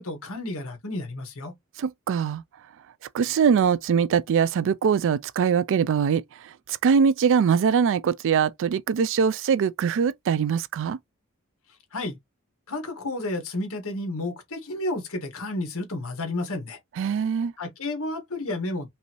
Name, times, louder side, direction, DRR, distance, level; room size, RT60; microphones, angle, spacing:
voice 1, 0.0-1.5 11.9-12.2 12.7-16.8 17.6-18.9, left 2 dB, 65° left, 1.6 m, -31 dB
voice 2, 1.8-2.4 3.1-6.2 6.7-11.0 17.0-17.5, right 6 dB, 60° right, 0.3 m, -22 dB
5.3 x 2.6 x 2.9 m
head